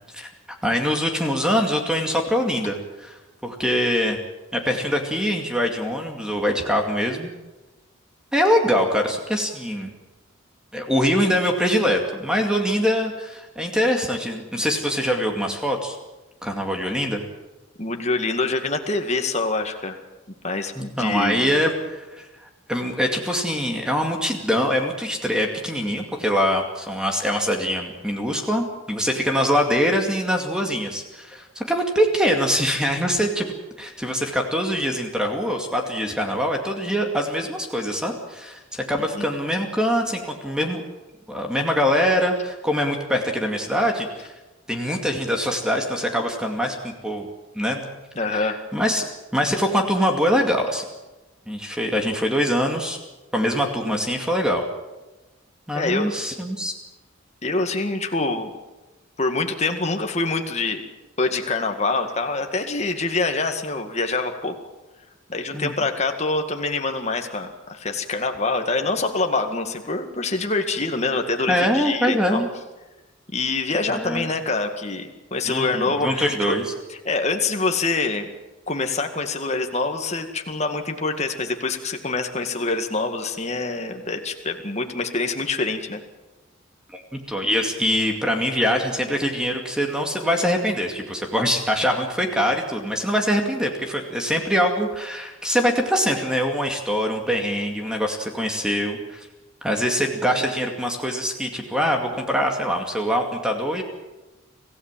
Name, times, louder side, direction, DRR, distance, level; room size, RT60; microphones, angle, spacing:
voice 1, 0.6-4.2 4.5-7.3 8.3-9.9 10.7-16.0 16.4-17.2 20.8-22.3 22.7-33.5 33.8-40.8 41.3-44.3 44.7-47.3 47.5-47.9 48.3-49.1 49.3-50.8 51.5-53.0 53.3-54.6 55.7-56.7 65.5-65.7 71.5-72.5 73.9-74.2 75.5-76.6 86.9-87.0 87.3-99.3 99.6-103.8, equal, 5° right, 3 dB, 2.3 m, -23 dB
voice 2, 17.8-20.0 20.4-21.6 39.1-39.3 48.2-48.6 55.7-56.1 57.4-58.5 59.2-60.8 61.2-64.6 65.3-72.4 73.3-76.6 77.1-78.3 78.7-86.0, left 3 dB, 35° left, 5 dB, 1.9 m, -25 dB
26.0 x 16.0 x 7.5 m, 1.1 s
head